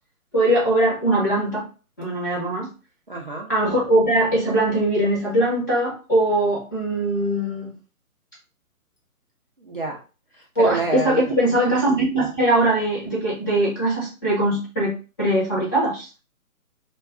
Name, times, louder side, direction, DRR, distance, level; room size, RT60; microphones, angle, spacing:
voice 1, 0.3-1.7 2.0-2.7 3.5-7.7 10.6-16.1, right 1 dB, 15° left, -6 dB, 0.7 m, -21 dB
voice 2, 3.1-3.5 9.6-10.0 10.3-11.3, right 2 dB, 40° right, -2 dB, 0.4 m, -28 dB
2.3 x 2.2 x 3.5 m, 0.34 s
figure-of-eight pair, 150°, 45 cm